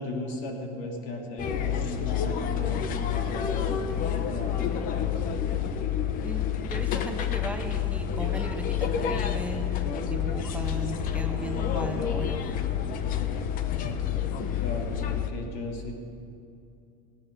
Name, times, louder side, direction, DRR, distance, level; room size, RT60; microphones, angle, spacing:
voice 1, 0.0-3.8 4.1-5.1 5.6-5.7 14.5-15.9, left 1 dB, 65° left, 1 dB, 2.6 m, -36 dB
sound 1, 1.4-15.3, left 8 dB, 45° left, 0.9 m, -29 dB
voice 2, 6.2-9.7 10.1-12.4, right 2 dB, 5° right, 4 dB, 0.7 m, -37 dB
17.5 x 10.5 x 5.4 m, 2.6 s
supercardioid pair, 125°, 20 cm